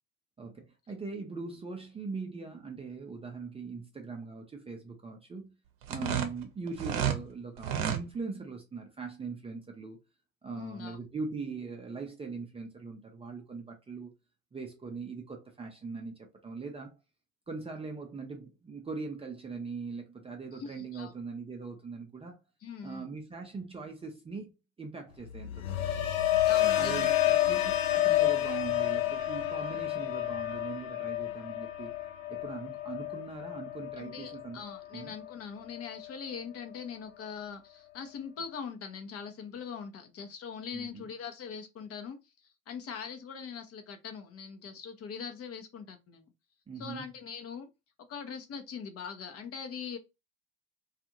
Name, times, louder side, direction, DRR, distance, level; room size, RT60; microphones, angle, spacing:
voice 1, 0.4-5.6 5.9-10.0 10.4-14.2 14.5-17.0 17.5-22.4 22.8-24.5 24.8-25.8 26.8-32.0 32.3-34.6 34.9-35.1 40.7-41.1 46.7-47.1, right 4 dB, 15° right, 0.5 m, -41 dB
sound 1, 5.8-7.2 7.6-8.0, right 9 dB, 55° right, 0.8 m, -31 dB
voice 2, 6.0-6.3 10.6-11.0 20.5-21.1 22.6-23.1 26.4-27.1 34.0-42.2 42.4-46.3 46.8-47.7 48.1-50.0, left 6 dB, 35° left, 0.7 m, -42 dB
sound 2, 25.2-35.3 35.7-36.1, left 13 dB, 75° left, 0.6 m, -30 dB
2.5 x 2.4 x 2.8 m
hypercardioid pair, 80°, 41 cm